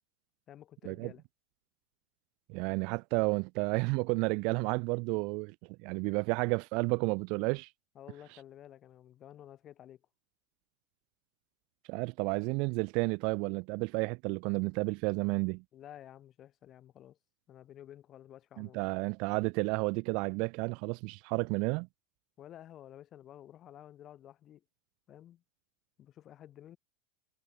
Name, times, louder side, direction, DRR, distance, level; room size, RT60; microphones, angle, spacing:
voice 1, 0.5-1.2 7.9-10.0 15.7-17.2 17.5-18.8 22.4-24.6 25.1-25.4 26.0-26.8, left 11 dB, 25° left, 6.1 m, -52 dB
voice 2, 2.5-5.5 5.8-7.7 11.9-15.6 18.6-21.9, right 31 dB, 45° right, 0.5 m, -31 dB
supercardioid pair, 165°, 0 cm